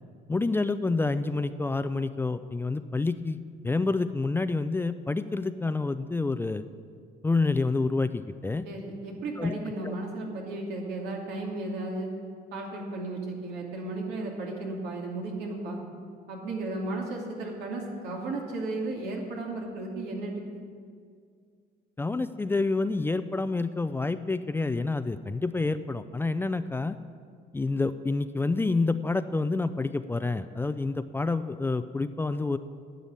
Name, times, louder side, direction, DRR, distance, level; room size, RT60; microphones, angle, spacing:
voice 1, 0.3-3.4 3.6-6.6 7.2-8.6 9.4-9.5 9.8-9.9 22.0-27.0 27.5-32.6, left 3 dB, 15° left, 12 dB, 0.4 m, -28 dB
voice 2, 8.6-12.1 12.5-15.8 16.3-20.3, right 2 dB, 80° right, -1 dB, 2.7 m, -34 dB
11.5 x 6.9 x 9.5 m, 2.1 s
cardioid pair, 110°, 17 cm